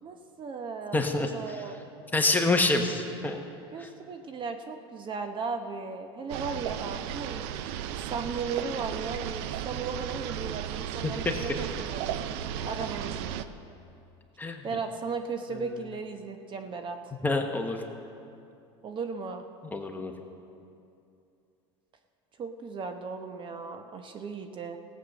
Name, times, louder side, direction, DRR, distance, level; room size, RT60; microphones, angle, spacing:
voice 1, 0.0-1.8 3.7-7.4 7.9-12.2 12.6-13.4 14.6-17.1 18.8-19.5 22.4-24.8, right 4 dB, 35° right, 6 dB, 0.9 m, -36 dB
voice 2, 0.9-1.6 2.1-3.4 3.8-3.9 11.0-11.4 14.4-14.7 15.5-15.8 17.2-17.8 19.7-20.1, left 2 dB, 10° left, 3 dB, 1.2 m, -27 dB
sound 1, 6.3-13.4, right 10 dB, 70° right, 0.6 m, -35 dB
16.0 x 8.2 x 6.3 m, 2.6 s
supercardioid pair, 105°, 14 cm